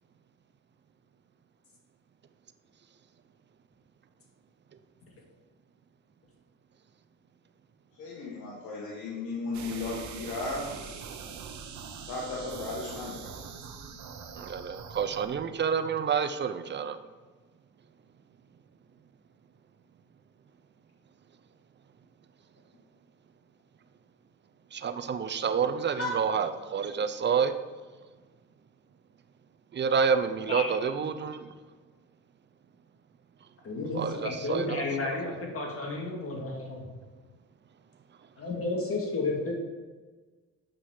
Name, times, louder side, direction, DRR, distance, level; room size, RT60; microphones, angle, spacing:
voice 1, 8.0-11.0 12.0-13.3, left 3 dB, 80° left, -4 dB, 1.6 m, -35 dB
sound 1, 9.5-15.4, right 6 dB, 70° right, 1.0 m, -43 dB
voice 2, 14.3-17.0 24.7-27.5 29.7-31.5 33.9-35.2, right 6 dB, 35° right, 9 dB, 0.7 m, -29 dB
voice 3, 33.6-36.9 38.4-39.5, left 2 dB, 45° left, -1 dB, 2.5 m, -32 dB
7.6 x 6.0 x 5.0 m, 1.4 s
cardioid pair, 90°, 30 cm